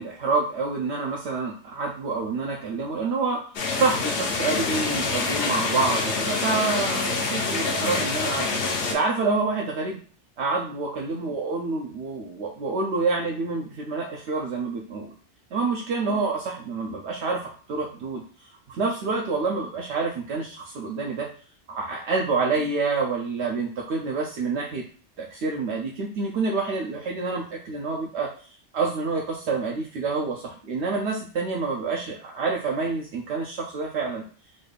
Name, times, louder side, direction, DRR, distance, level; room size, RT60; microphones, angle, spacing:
voice 1, 0.0-3.4 3.7-10.0 10.4-15.1 15.5-18.2 18.7-21.3 21.7-24.8 25.2-28.3 28.7-34.2, right 4 dB, 75° right, -1 dB, 0.9 m, -27 dB
sound 1, 3.5-8.9, left 4 dB, 75° left, 1.0 m, -26 dB
4.0 x 2.3 x 3.3 m, 0.42 s
omnidirectional pair, 1.2 m